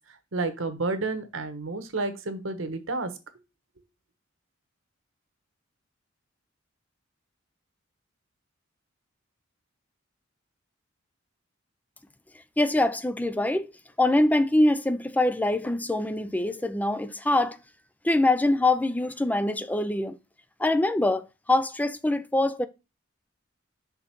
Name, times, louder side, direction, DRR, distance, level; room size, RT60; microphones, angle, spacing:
voice 1, 0.3-3.1, right 3 dB, 75° right, 1.1 m, -30 dB
voice 2, 12.6-13.7 14.0-17.6 18.0-20.2 20.6-22.7, left 2 dB, 10° left, 0.4 m, -24 dB
6.0 x 3.8 x 5.7 m
head